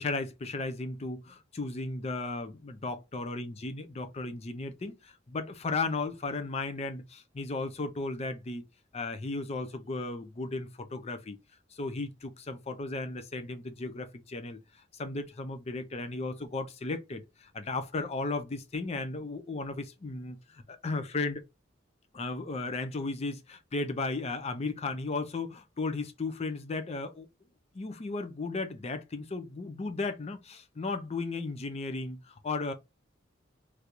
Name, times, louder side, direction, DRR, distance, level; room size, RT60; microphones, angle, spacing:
voice 1, 0.0-8.6 8.9-11.4 11.8-14.6 15.0-21.4 22.1-27.3 27.7-32.7, left 3 dB, 35° left, 0.5 m, -35 dB
3.3 x 2.5 x 2.9 m
head